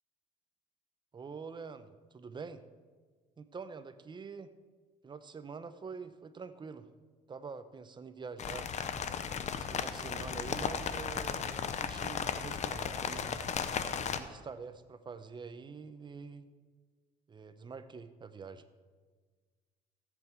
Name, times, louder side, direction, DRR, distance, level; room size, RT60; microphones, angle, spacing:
voice 1, 1.1-2.6 3.4-4.5 5.0-6.9 7.3-8.7 9.5-13.4 14.0-16.5 17.3-18.6, right 5 dB, 25° right, 12 dB, 0.7 m, -46 dB
sound 1, 8.4-14.2, left 7 dB, 45° left, 0.8 m, -35 dB
14.5 x 8.2 x 4.5 m, 1.4 s
cardioid pair, 110°, 17 cm